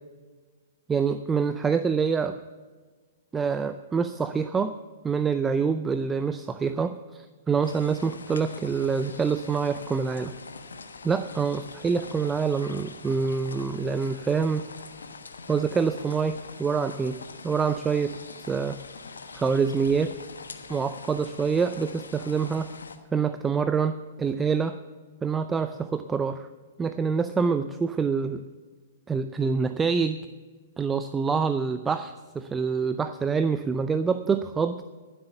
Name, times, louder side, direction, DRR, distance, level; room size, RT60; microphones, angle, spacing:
voice 1, 0.9-2.4 3.3-4.7 5.0-10.3 11.0-14.7 15.5-18.2 18.5-18.8 19.3-20.1 20.7-22.7 23.1-24.8 25.2-26.5 26.8-28.4 29.1-30.2 30.8-34.8, right 5 dB, 15° right, 11 dB, 0.5 m, -26 dB
sound 1, 7.6-23.0, left 4 dB, 80° left, 1.2 m, -43 dB
15.0 x 7.9 x 7.0 m, 1.4 s
hypercardioid pair, 115°, 0 cm